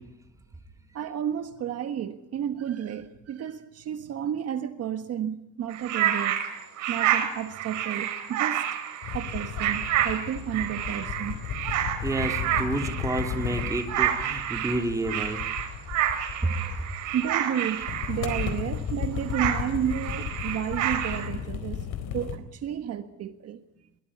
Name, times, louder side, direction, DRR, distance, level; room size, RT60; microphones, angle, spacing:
voice 1, 0.9-6.4 6.9-8.7 9.1-11.4 16.3-16.6 17.1-23.6, right 9 dB, 55° right, 1.5 m, -32 dB
sound 1, 5.7-18.8 19.2-21.3, right 11 dB, 70° right, 5.6 m, -29 dB
sound 2, 9.0-17.1 17.8-22.4, left 8 dB, 80° left, 4.1 m, -34 dB
voice 2, 12.0-15.4 16.4-16.5, right 2 dB, 10° right, 2.7 m, -29 dB
23.0 x 21.0 x 9.8 m
cardioid pair, 150°, 31 cm